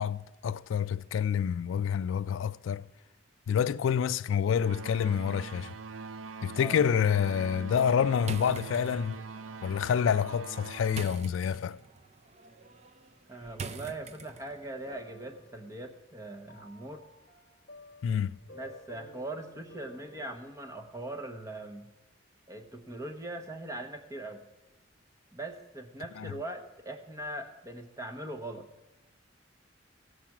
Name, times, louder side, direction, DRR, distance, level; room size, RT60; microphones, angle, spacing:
voice 1, 0.0-2.9 3.5-5.7 6.4-9.2 9.6-11.8 18.0-18.4 26.2-26.3, left 7 dB, 85° left, 0.3 m, -28 dB
sound 1, 4.6-11.0, right 4 dB, 90° right, 0.5 m, -42 dB
sound 2, 8.2-14.7, right 4 dB, 35° right, 0.5 m, -44 dB
voice 2, 13.3-17.0 18.5-21.9 22.5-24.4 25.3-28.7, right 1 dB, 15° right, 0.8 m, -41 dB
sound 3, 14.1-20.4, left 2 dB, 50° left, 1.1 m, -53 dB
16.0 x 7.4 x 5.9 m
head